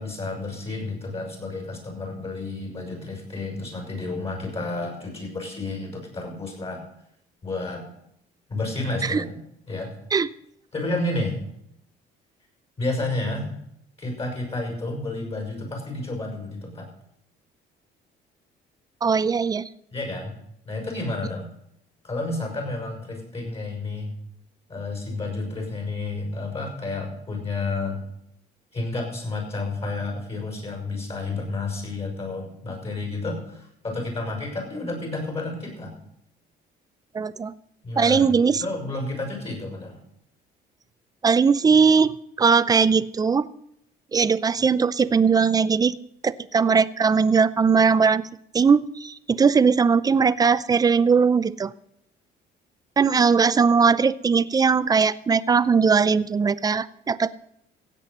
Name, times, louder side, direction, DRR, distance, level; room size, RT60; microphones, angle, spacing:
voice 1, 0.0-6.8 7.4-7.8 8.5-9.4 9.7-9.9 10.7-11.4 12.8-13.5 14.0-16.9 19.9-20.3 20.6-21.5 22.0-24.1 24.7-28.0 28.7-36.0 37.8-40.0, left 2 dB, 35° left, 1 dB, 6.0 m, -31 dB
voice 2, 19.0-19.7 37.1-37.5 38.0-38.6 41.2-43.5 44.1-45.9 46.2-48.2 48.5-51.7 53.0-57.3, right 5 dB, 20° right, 16 dB, 0.5 m, -19 dB
16.0 x 8.4 x 5.4 m, 0.75 s
cardioid pair, 110°, 17 cm